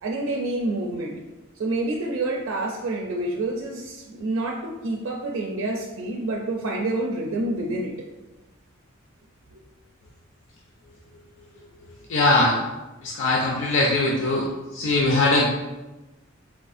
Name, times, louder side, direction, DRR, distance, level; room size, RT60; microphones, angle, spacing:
voice 1, 0.0-1.2 1.6-8.1 9.5-9.6, right 2 dB, 70° right, -1 dB, 0.4 m, -28 dB
voice 2, 12.1-12.6 13.0-14.5 14.7-15.5, left 2 dB, 65° left, -3 dB, 0.5 m, -20 dB
4.4 x 2.4 x 2.5 m, 1.1 s
head